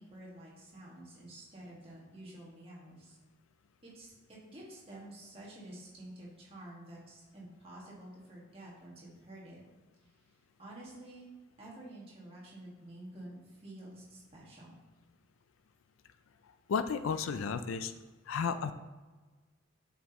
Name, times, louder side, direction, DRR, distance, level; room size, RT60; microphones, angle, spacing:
voice 1, 0.0-3.2 3.8-9.6 10.0-11.3 11.6-14.8, right 1 dB, 30° right, -5 dB, 1.7 m, -50 dB
voice 2, 16.7-17.9 18.3-18.7, left 6 dB, 80° left, 11 dB, 0.4 m, -33 dB
7.9 x 5.1 x 3.0 m, 1.3 s
head